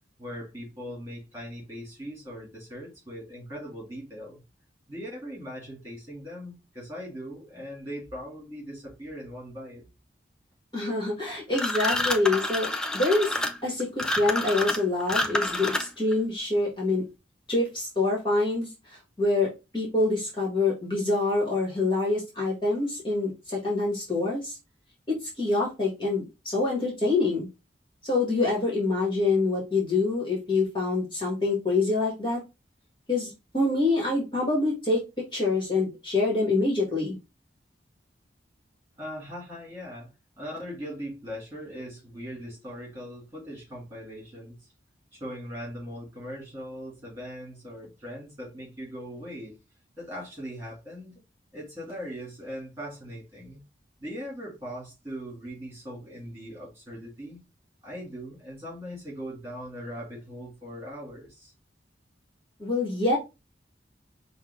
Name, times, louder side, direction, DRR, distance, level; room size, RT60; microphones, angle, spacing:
voice 1, 0.2-4.4 4.9-9.9 39.0-40.1 40.4-44.7 45.1-49.6 50.0-51.2 51.5-53.6 54.0-57.4 57.8-61.5, equal, 15° right, 2.5 m, -40 dB
voice 2, 10.7-12.7 12.9-17.0 17.5-24.6 25.1-27.5 28.0-32.4 33.1-37.2 62.6-63.2, left 2 dB, 25° left, 1.5 m, -26 dB
sound 1, 11.5-16.1, left 1 dB, 5° left, 0.4 m, -28 dB
5.7 x 2.2 x 3.6 m
head